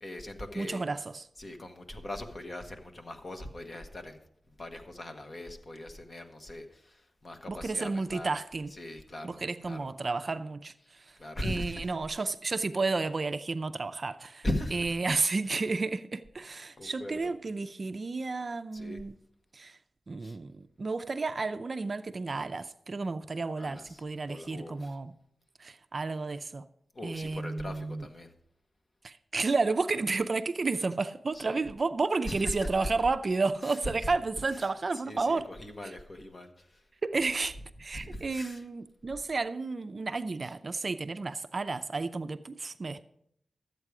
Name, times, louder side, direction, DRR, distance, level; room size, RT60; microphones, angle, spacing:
voice 1, 0.0-0.8 1.4-4.2 4.6-8.3 8.7-9.4 9.7-9.9 11.2-11.9 14.4-15.0 16.8-17.3 18.7-19.0 20.2-20.4 23.6-25.0 26.9-28.3 31.3-31.6 32.2-32.9 33.6-33.9 34.9-36.6 37.9-38.6 40.4-40.5, left 1 dB, 40° left, 1.2 m, -39 dB
voice 2, 0.6-1.2 7.5-8.7 9.2-10.7 11.4-14.4 14.7-19.2 19.5-19.7 20.1-25.1 25.6-26.6 27.0-28.1 29.0-35.5 35.8-35.9 37.0-37.5 37.8-43.0, right 3 dB, 45° right, 0.4 m, -32 dB
12.5 x 8.2 x 4.8 m
wide cardioid pair, 105°, 0 cm